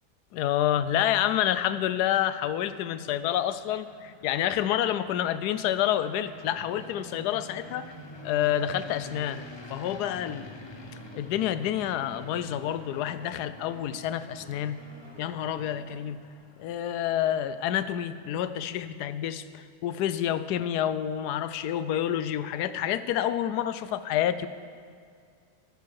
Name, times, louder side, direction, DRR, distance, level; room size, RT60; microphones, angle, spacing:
voice 1, 0.3-7.9 8.2-9.4 9.7-10.6 11.1-14.8 15.2-16.2 16.6-24.5, left 11 dB, 80° left, 13 dB, 1.1 m, -28 dB
sound 1, 2.0-18.3, left 3 dB, 40° left, 0.4 m, -48 dB
sound 2, 6.5-16.0, right 5 dB, 85° right, 1.6 m, -51 dB
14.0 x 13.0 x 4.7 m, 2.2 s
omnidirectional pair, 1.7 m